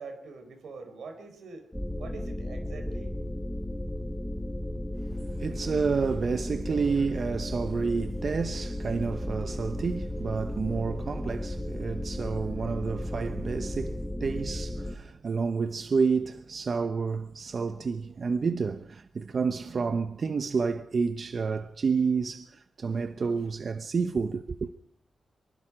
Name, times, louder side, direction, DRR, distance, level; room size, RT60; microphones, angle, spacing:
voice 1, 0.0-1.7 2.0-3.1, right 4 dB, 90° right, 4.6 m, -43 dB
sound 1, 1.7-15.0, left 1 dB, ahead, 1.5 m, -34 dB
voice 2, 5.1-24.7, right 5 dB, 50° right, 0.8 m, -30 dB
24.5 x 23.0 x 5.1 m
wide cardioid pair, 120°, 0 cm